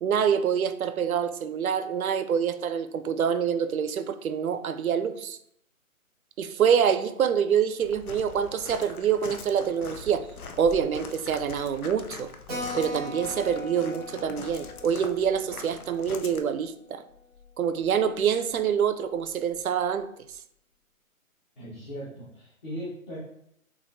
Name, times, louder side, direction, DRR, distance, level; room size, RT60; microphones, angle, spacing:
voice 1, 0.0-5.4 6.4-10.3 10.6-12.3 12.7-17.0 17.6-20.1, right 7 dB, 75° right, 11 dB, 0.5 m, -26 dB
Walk footsteps, 7.8-16.4, left 4 dB, 80° left, 0.7 m, -43 dB
Keyboard (musical), 12.5-17.5 17.8-17.9 18.2-18.3 18.6-18.7 19.2-19.6, left 2 dB, 5° right, 0.9 m, -41 dB
voice 2, 21.6-23.2, equal, 30° left, -9 dB, 1.2 m, -38 dB
6.4 x 2.7 x 2.6 m, 0.72 s
hypercardioid pair, 160°, 43 cm